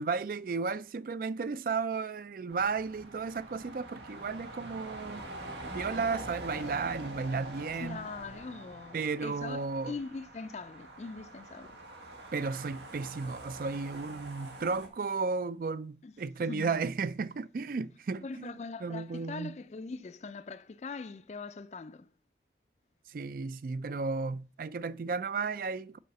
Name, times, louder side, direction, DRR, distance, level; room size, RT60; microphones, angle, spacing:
voice 1, 0.0-5.3 5.7-8.0 8.9-9.9 12.3-18.5 18.8-19.5 23.1-26.0, right 4 dB, 50° right, 0.4 m, -34 dB
sound 1, 2.5-14.9, right 1 dB, 85° right, 1.8 m, -45 dB
voice 2, 7.8-11.8 16.0-16.1 16.4-16.8 18.2-22.1, left 4 dB, 40° left, 0.3 m, -42 dB
6.7 x 4.8 x 6.5 m
head